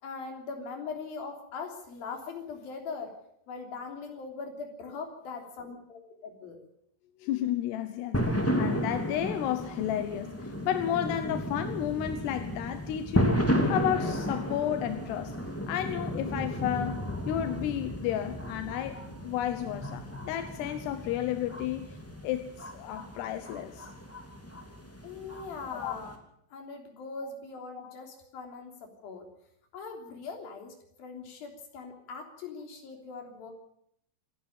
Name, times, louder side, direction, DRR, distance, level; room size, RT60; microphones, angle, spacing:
voice 1, 0.0-3.1 3.5-6.6 25.0-26.1 26.5-29.3 29.7-33.5, left 4 dB, 50° left, 4.8 m, -41 dB
voice 2, 7.2-15.4 15.7-23.9 25.7-25.9 27.2-27.3 27.8-27.9, left 11 dB, 75° left, 2.7 m, -32 dB
sound 1, 8.1-26.1, equal, 5° left, 1.1 m, -33 dB
27.5 x 11.0 x 8.9 m
omnidirectional pair, 5.6 m